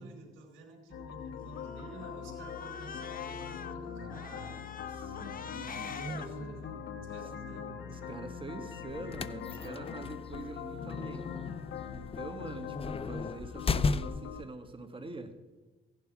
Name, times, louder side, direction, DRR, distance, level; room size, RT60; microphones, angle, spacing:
voice 1, 0.0-4.6 5.8-8.3, right 2 dB, 85° right, 0 dB, 4.2 m, -48 dB
sound 1, 0.9-14.4, left 7 dB, 70° left, 1.4 m, -42 dB
Cat, 1.4-3.7 4.1-6.3, left 6 dB, 45° left, 1.1 m, -45 dB
voice 2, 4.8-6.3 7.9-11.3 11.9-15.3, right 2 dB, 25° right, 7 dB, 2.0 m, -44 dB
sound 2, 8.9-14.4, left 4 dB, 30° left, 0.6 m, -35 dB
16.5 x 11.0 x 4.8 m, 1.2 s
cardioid pair, 90°, 20 cm